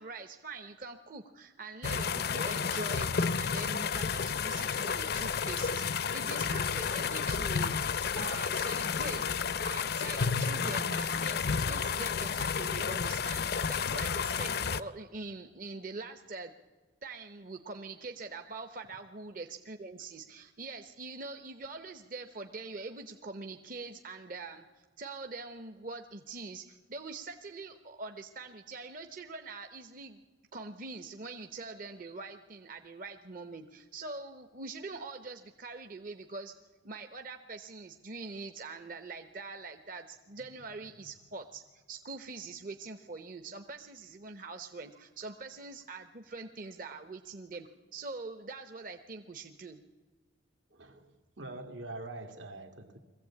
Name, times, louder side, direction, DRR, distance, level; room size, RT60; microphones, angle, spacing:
voice 1, 0.0-7.8 8.2-9.3 9.6-16.5 17.0-24.7 25.0-30.2 30.5-36.5 36.8-41.6 41.9-49.8, right 3 dB, 45° right, 0.8 m, -43 dB
sound 1, 1.8-14.8, left 6 dB, 55° left, 0.5 m, -31 dB
voice 2, 50.7-53.0, right 2 dB, 80° right, 1.9 m, -44 dB
22.5 x 15.0 x 8.5 m
head